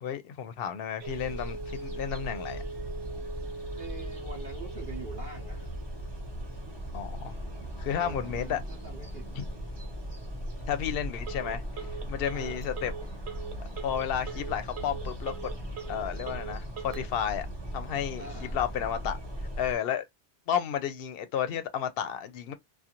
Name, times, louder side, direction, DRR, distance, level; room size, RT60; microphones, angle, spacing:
voice 1, 0.0-2.6 6.9-7.4 7.8-8.6 9.4-9.5 10.7-12.9 13.8-15.5 15.9-17.5 17.7-19.2 19.6-20.0 20.5-22.5, left 9 dB, 70° left, 0.7 m, -32 dB
sound 1, 1.0-19.8, equal, 25° right, 0.9 m, -39 dB
Telephone, 1.0-17.0, right 5 dB, 85° right, 1.0 m, -43 dB
sound 2, 2.3-19.6, right 2 dB, 10° right, 0.4 m, -47 dB
voice 2, 3.8-5.7 7.9-9.3 12.3-12.6 18.2-18.6, right 3 dB, 60° right, 0.8 m, -44 dB
2.5 x 2.2 x 2.8 m
omnidirectional pair, 1.1 m